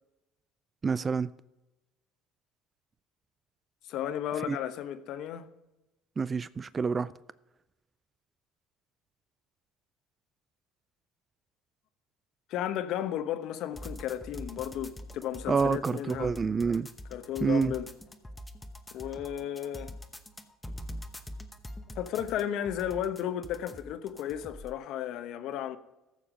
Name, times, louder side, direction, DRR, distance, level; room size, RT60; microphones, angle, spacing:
voice 1, 0.8-1.3 4.5-4.6 6.2-7.1 15.5-16.9 17.4-17.7, right 5 dB, 25° right, 0.3 m, -27 dB
voice 2, 3.9-5.5 12.5-16.3 17.1-17.9 18.9-19.9 21.9-25.8, left 10 dB, 65° left, 0.9 m, -34 dB
sound 1, 13.7-24.7, equal, 10° left, 1.0 m, -44 dB
14.0 x 7.1 x 5.1 m
cardioid pair, 105°, 0 cm